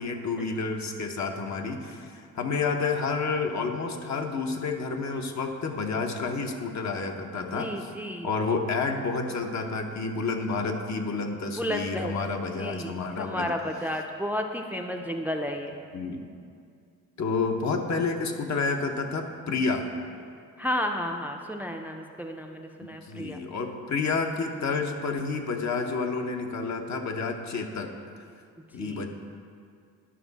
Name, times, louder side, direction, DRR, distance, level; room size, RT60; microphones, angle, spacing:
voice 1, 0.0-7.9 8.2-13.5 15.9-16.2 17.2-19.9 23.0-27.9 28.7-29.1, left 4 dB, 55° left, 3 dB, 0.9 m, -30 dB
voice 2, 7.4-8.3 11.4-12.1 12.6-15.8 20.6-23.4 28.8-29.1, left 1 dB, 5° right, 3 dB, 0.5 m, -32 dB
11.0 x 5.3 x 4.0 m, 2.3 s
cardioid pair, 85°, 33 cm